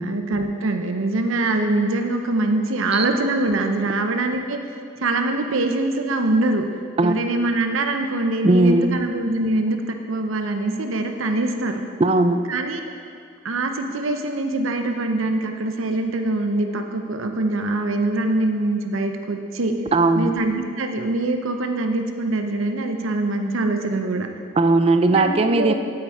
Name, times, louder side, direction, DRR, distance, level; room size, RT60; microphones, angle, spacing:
voice 1, 0.0-4.6 5.0-6.6 7.0-11.8 12.5-12.8 13.4-19.7 20.2-24.3 25.1-25.7, right 2 dB, 85° right, 5 dB, 0.7 m, -23 dB
voice 2, 8.4-9.0 12.0-12.4 19.9-20.3 24.6-25.7, right 2 dB, 30° right, 8 dB, 0.4 m, -17 dB
8.7 x 8.1 x 4.8 m, 2.3 s
head